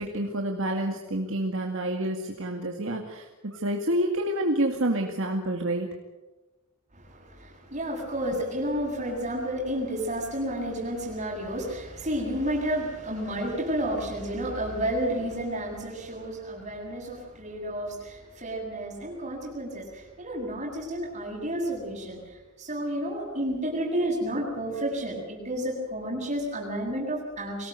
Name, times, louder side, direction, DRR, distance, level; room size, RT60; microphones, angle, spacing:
voice 1, 0.0-5.9, right 1 dB, 60° right, 2 dB, 2.2 m, -28 dB
voice 2, 6.9-27.7, right 1 dB, 30° right, -1 dB, 7.9 m, -31 dB
24.0 x 18.5 x 8.3 m, 1.1 s
head